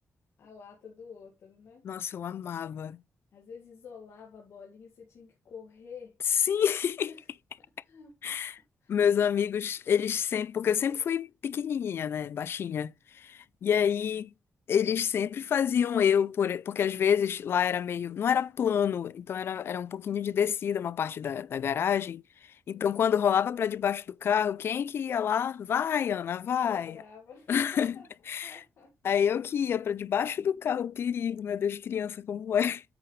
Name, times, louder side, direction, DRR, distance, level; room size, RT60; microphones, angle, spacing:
voice 1, 0.4-1.9 3.3-6.1 7.1-7.3 7.8-8.4 8.8-8.9 22.7-23.0 26.6-28.1 28.4-28.9, left 6 dB, 75° left, 2.0 m, -49 dB
voice 2, 1.8-3.0 6.5-7.1 8.2-8.5 8.9-14.3 14.7-22.2 22.7-27.0 27.5-27.9 28.3-28.6 29.0-32.8, left 8 dB, 60° left, 0.3 m, -28 dB
8.9 x 5.9 x 3.2 m
wide cardioid pair, 145°, 5 cm